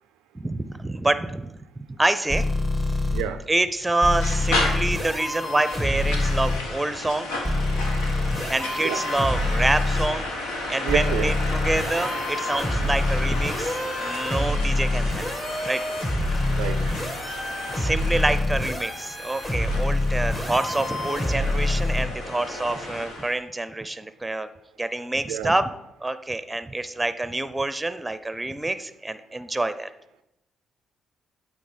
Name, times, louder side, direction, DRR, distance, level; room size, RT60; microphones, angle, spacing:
voice 1, 0.3-1.5 1.9-2.5 3.5-7.3 8.5-10.3 10.7-15.3 15.6-15.8 16.3-16.4 17.7-24.5 24.8-25.7 26.0-29.9, right 2 dB, 15° right, 0.6 m, -27 dB
sound 1, 2.3-3.2 4.0-6.6 7.4-10.1 10.9-22.1, left 2 dB, 20° left, 1.5 m, -26 dB
voice 2, 3.1-3.4 8.8-9.1 10.8-11.3 16.5-17.1 25.3-25.6, right 11 dB, 80° right, 0.3 m, -29 dB
sound 2, 4.2-23.3, left 2 dB, 85° left, 1.3 m, -33 dB
8.6 x 3.8 x 5.0 m
hypercardioid pair, 50°, 0 cm